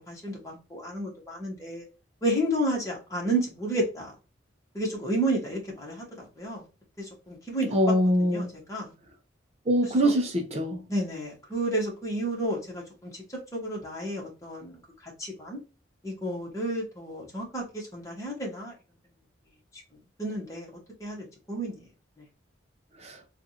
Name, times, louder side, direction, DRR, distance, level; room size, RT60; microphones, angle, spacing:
voice 1, 0.1-1.8 2.2-4.1 4.7-6.6 7.0-7.8 8.2-8.9 9.8-10.1 10.9-13.1 13.5-15.6 16.0-18.7 20.2-20.7 21.0-21.8, right 1 dB, 15° left, 1.3 m, -31 dB
voice 2, 7.7-8.5 9.7-10.8 23.0-23.2, equal, 35° right, 0.6 m, -23 dB
3.6 x 2.5 x 2.8 m
head